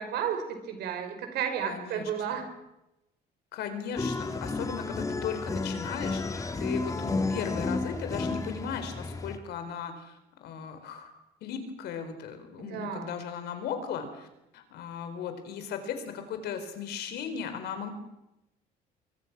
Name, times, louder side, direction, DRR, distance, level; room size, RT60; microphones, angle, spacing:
voice 1, 0.0-2.5 12.6-13.1, right 8 dB, 75° right, 6 dB, 5.4 m, -33 dB
voice 2, 1.6-2.4 3.5-11.1 11.4-14.3 14.5-17.9, left 7 dB, 75° left, 8 dB, 4.5 m, -37 dB
sound 1, 4.0-9.4, left 3 dB, 20° left, 2.0 m, -32 dB
25.0 x 23.5 x 6.2 m, 0.89 s
cardioid pair, 110°, 17 cm